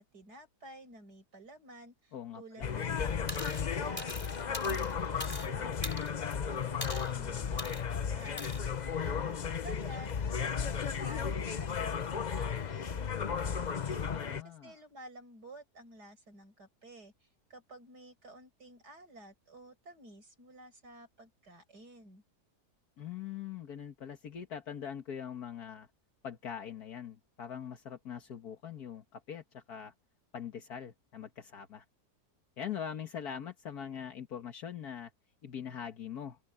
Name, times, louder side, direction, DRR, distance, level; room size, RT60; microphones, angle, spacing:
voice 1, 0.0-4.1 4.5-8.4 9.0-22.2, right 1 dB, 80° right, 7.1 m, -52 dB
voice 2, 2.1-2.7 14.1-14.7 23.0-25.9 26.2-29.9 30.3-31.9 32.6-35.1 35.4-36.4, left 8 dB, 70° left, 1.9 m, -42 dB
sound 1, 2.6-14.4, left 6 dB, 45° left, 0.6 m, -34 dB
sound 2, 3.3-3.6 4.0-5.5 5.8-6.3 6.8-7.1 7.6-7.8 8.4-8.6, equal, 5° left, 4.2 m, -41 dB
open air
omnidirectional pair, 1.7 m